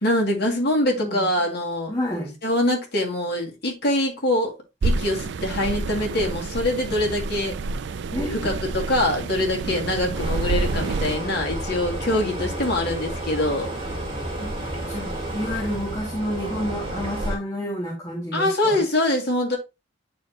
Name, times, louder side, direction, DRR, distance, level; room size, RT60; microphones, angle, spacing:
voice 1, 0.0-1.9 2.4-4.5 4.8-7.6 8.4-13.7 18.3-19.6, left 1 dB, 55° left, 2.4 m, -24 dB
voice 2, 1.9-2.3 8.1-8.5 14.4-14.5 14.9-18.9, equal, 20° left, 2.1 m, -29 dB
sound 1, 4.8-11.2, right 3 dB, 65° right, 0.4 m, -28 dB
sound 2, 10.1-17.4, right 1 dB, 25° right, 2.4 m, -31 dB
9.4 x 4.5 x 2.9 m
head